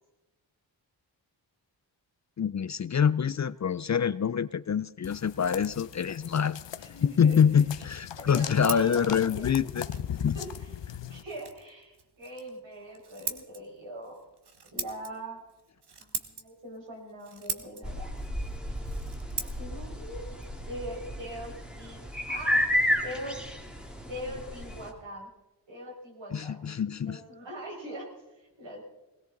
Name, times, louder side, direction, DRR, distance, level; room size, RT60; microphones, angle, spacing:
voice 1, 2.4-6.6 7.2-9.9 10.2-10.4 26.3-27.2, left 7 dB, 40° left, 16 dB, 0.5 m, -26 dB
sound 1, 5.0-11.2, left 9 dB, 70° left, 0.8 m, -39 dB
voice 2, 6.8-7.6 8.2-9.6 10.3-10.7 11.1-14.2 14.6-15.4 16.0-18.1 19.4-20.3 20.7-22.0 22.3-22.7 23.0-23.4 24.1-25.3 25.7-26.6 27.0-28.8, equal, 75° right, -1 dB, 5.5 m, -41 dB
Scissors, 8.1-21.7, right 5 dB, 60° right, 1.5 m, -42 dB
sound 2, 17.8-24.9, left 1 dB, ahead, 2.2 m, -32 dB
20.0 x 17.5 x 3.9 m, 1.0 s
cardioid pair, 80°, 45 cm